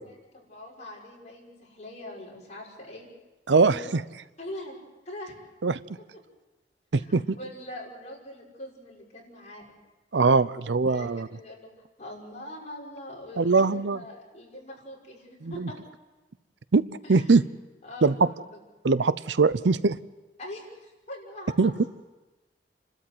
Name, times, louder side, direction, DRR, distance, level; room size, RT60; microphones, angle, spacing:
voice 1, 0.0-3.1 3.5-3.8 4.4-4.7 5.1-5.3 6.9-9.7 10.9-11.7 12.0-15.8 17.0-17.3 17.8-18.6 20.4-21.9, left 1 dB, 40° left, -3 dB, 6.1 m, -42 dB
voice 2, 3.5-4.0 5.6-5.8 6.9-7.4 10.1-11.3 13.4-14.0 15.4-15.7 16.7-16.8 17.1-17.4 18.0-18.1 18.8-20.0 21.6-21.7, right 4 dB, 80° right, 16 dB, 0.6 m, -21 dB
30.0 x 12.5 x 7.8 m, 1.1 s
head